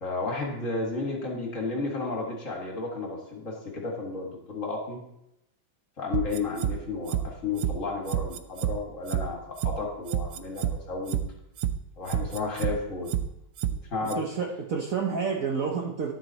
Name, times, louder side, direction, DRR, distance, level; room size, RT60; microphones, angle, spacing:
voice 1, 0.0-5.0 6.0-11.2 12.0-13.1 13.9-14.2, left 3 dB, 45° left, -1 dB, 2.0 m, -32 dB
sound 1, 6.1-6.7 7.1-7.2 7.6-7.7 8.1-8.7 9.1-9.2 9.6-9.7 10.1-10.7 11.1-11.2 11.6-11.7 12.1-12.7 13.1-13.2 13.6-13.7 14.1-14.2, right 11 dB, 80° right, 0.7 m, -28 dB
voice 2, 14.0-16.1, right 5 dB, 55° right, 1 dB, 1.1 m, -29 dB
11.0 x 7.5 x 4.1 m, 0.84 s
omnidirectional pair, 2.1 m